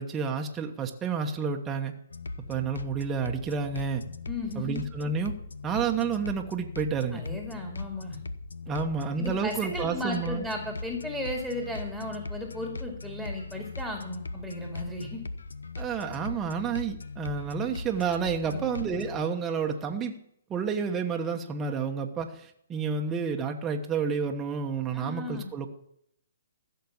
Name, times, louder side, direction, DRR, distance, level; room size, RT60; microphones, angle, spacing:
voice 1, 0.0-1.9 2.5-4.0 4.5-5.3 5.6-7.2 8.7-10.4 15.8-20.2 20.5-25.7, right 6 dB, 15° right, 3 dB, 1.2 m, -30 dB
sound 1, 2.1-19.3, left 3 dB, 85° left, 0.9 m, -39 dB
voice 2, 4.3-4.8 7.1-8.2 9.2-15.2 18.5-18.7 24.9-25.5, left 1 dB, 5° left, 0 dB, 2.3 m, -35 dB
15.0 x 6.7 x 7.2 m, 0.73 s
hypercardioid pair, 140°, 0 cm